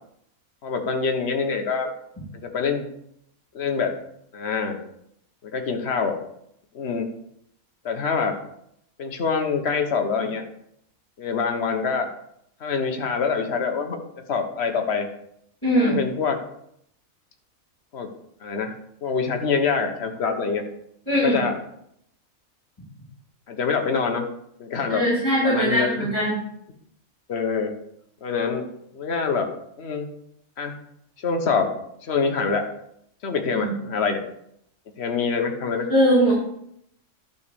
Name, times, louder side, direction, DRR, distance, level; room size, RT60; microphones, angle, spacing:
voice 1, 0.6-1.9 2.5-2.9 3.5-3.9 4.3-4.8 5.4-6.2 6.7-7.1 7.8-8.4 9.0-10.4 11.2-12.1 12.6-14.0 14.3-15.1 15.8-16.4 17.9-18.1 18.4-18.7 19.0-20.6 21.2-21.5 23.5-24.2 24.6-25.0 25.4-26.1 27.3-27.7 28.2-28.6 28.9-29.5 29.8-30.1 30.6-30.7 31.2-31.7 32.0-32.6 33.2-34.2 35.0-35.9, left 5 dB, 50° left, 4 dB, 1.4 m, -25 dB
voice 2, 15.6-16.0 21.1-21.4 24.9-26.4 33.5-33.7 35.9-36.3, equal, 20° left, -8 dB, 3.9 m, -20 dB
12.0 x 4.3 x 6.9 m, 0.73 s
omnidirectional pair, 1.5 m